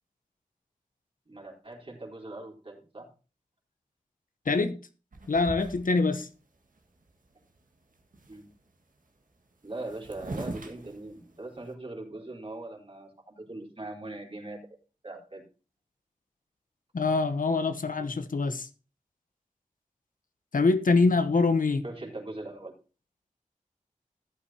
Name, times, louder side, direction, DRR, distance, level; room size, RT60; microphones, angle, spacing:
voice 1, 1.3-3.1 8.3-8.5 9.6-14.6 15.0-15.4 21.8-22.7, right 2 dB, 40° right, 3.8 m, -41 dB
voice 2, 4.5-4.8 5.3-6.3 16.9-18.7 20.5-21.8, left 3 dB, 75° left, 1.0 m, -24 dB
Body Fall Drop Sit Down on Sofa Bed, 5.1-6.2 6.8-6.9 7.1-7.6 7.8-8.5 9.4-9.5 9.6-11.7, right 2 dB, 75° right, 1.8 m, -41 dB
14.5 x 8.5 x 2.9 m
cardioid pair, 40°, 14 cm